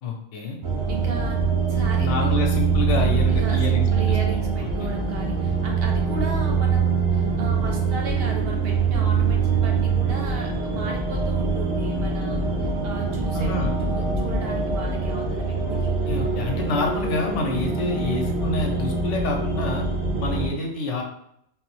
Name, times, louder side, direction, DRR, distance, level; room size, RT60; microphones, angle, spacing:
voice 1, 0.0-0.6 2.0-4.2 4.8-4.9 13.3-13.7 15.7-19.9 20.2-21.0, left 3 dB, 85° left, 1 dB, 1.0 m, -28 dB
sound 1, 0.6-20.5, right 5 dB, 90° right, 1.0 m, -23 dB
voice 2, 0.9-2.4 3.0-15.9, right 3 dB, 60° right, 1 dB, 0.8 m, -35 dB
3.3 x 2.0 x 3.1 m, 0.74 s
omnidirectional pair, 1.2 m